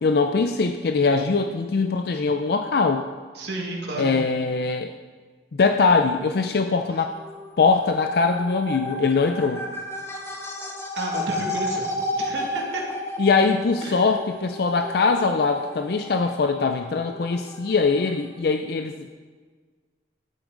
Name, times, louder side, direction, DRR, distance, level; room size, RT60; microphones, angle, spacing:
voice 1, 0.0-3.1 4.0-4.9 5.5-7.1 7.6-9.6 13.2-19.1, left 4 dB, 60° left, 7 dB, 0.4 m, -22 dB
voice 2, 3.3-4.1 11.0-11.9 12.1-12.8 13.8-14.0, right 2 dB, 75° right, -1 dB, 2.0 m, -31 dB
sound 1, 7.1-18.4, left 1 dB, 15° left, 0.9 m, -33 dB
11.5 x 8.0 x 3.8 m, 1.5 s
head